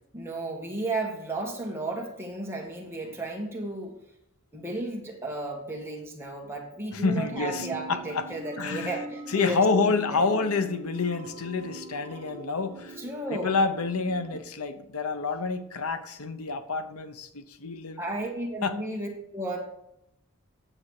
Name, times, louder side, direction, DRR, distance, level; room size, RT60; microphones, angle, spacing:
voice 1, 0.1-3.9 4.5-10.2 13.0-13.5 18.0-19.6, right 2 dB, 10° right, -1 dB, 1.9 m, -34 dB
voice 2, 6.9-8.3 8.6-8.9 9.3-13.0 13.3-18.0 18.6-18.8, left 4 dB, 85° left, 10 dB, 0.8 m, -28 dB
sound 1, 7.4-14.4, right 2 dB, 35° right, 1.5 m, -43 dB
9.0 x 7.4 x 4.8 m, 0.78 s
head